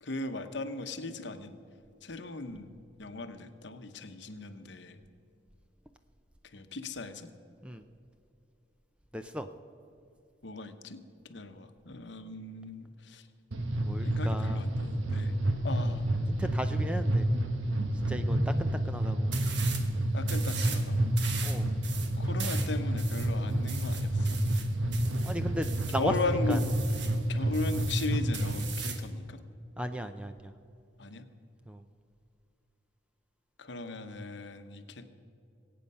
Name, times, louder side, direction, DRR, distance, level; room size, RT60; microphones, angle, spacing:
voice 1, 0.0-1.6 2.0-2.7 3.0-5.0 6.5-7.3 10.4-11.0 11.2-13.3 14.0-15.3 15.6-16.0 16.4-16.5 17.0-17.1 20.1-21.1 22.2-24.4 25.9-26.7 27.3-29.4 31.0-31.2 33.6-35.0, left 3 dB, 65° left, 9 dB, 0.9 m, -37 dB
voice 2, 9.1-9.5 13.8-14.6 16.3-17.3 18.1-19.3 21.4-21.6 25.2-26.1 26.5-26.6 29.8-30.5 31.7-31.8, equal, 5° right, 8 dB, 0.4 m, -36 dB
sound 1, 13.5-28.6, right 1 dB, 90° right, 1.2 m, -29 dB
sound 2, 19.3-19.9 20.2-20.9 21.2-26.0 26.5-27.2 27.5-29.1, right 7 dB, 65° right, 1.3 m, -40 dB
22.0 x 8.6 x 5.4 m, 2.6 s
head